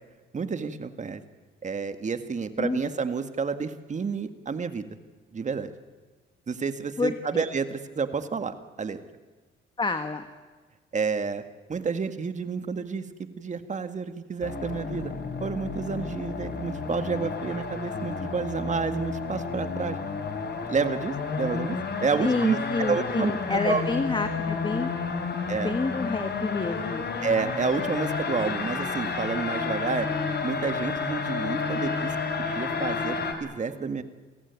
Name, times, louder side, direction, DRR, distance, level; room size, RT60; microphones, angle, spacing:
voice 1, 0.3-1.2 1.6-4.9 5.3-5.7 6.5-9.0 10.9-11.4 11.7-13.0 13.4-15.1 15.4-20.0 20.7-23.8 25.5-25.7 27.2-30.1 30.4-32.1 32.4-34.0, right 5 dB, 35° right, 10 dB, 1.9 m, -29 dB
voice 2, 7.0-7.4 9.8-10.3 22.2-24.9 25.6-27.1, left 3 dB, 25° left, 8 dB, 1.6 m, -28 dB
sound 1, 14.4-33.3, left 5 dB, 55° left, 3.7 m, -31 dB
28.5 x 16.0 x 9.6 m, 1.4 s
cardioid pair, 90°, 20 cm